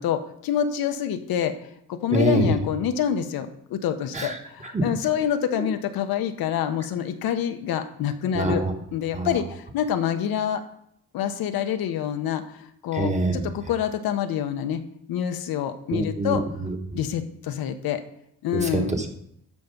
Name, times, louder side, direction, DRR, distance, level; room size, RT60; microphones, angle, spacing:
voice 1, 0.0-1.5 1.9-8.6 8.9-10.6 11.1-14.8 15.1-16.4 16.9-18.0 18.4-19.0, left 9 dB, 75° left, 8 dB, 0.9 m, -27 dB
voice 2, 2.1-2.6 4.1-4.9 5.6-5.7 8.3-8.7 9.1-9.4 12.9-13.4 15.9-17.0 18.5-19.1, right 2 dB, 20° right, 3 dB, 1.2 m, -25 dB
12.5 x 4.7 x 5.3 m, 0.73 s
cardioid pair, 155°, 36 cm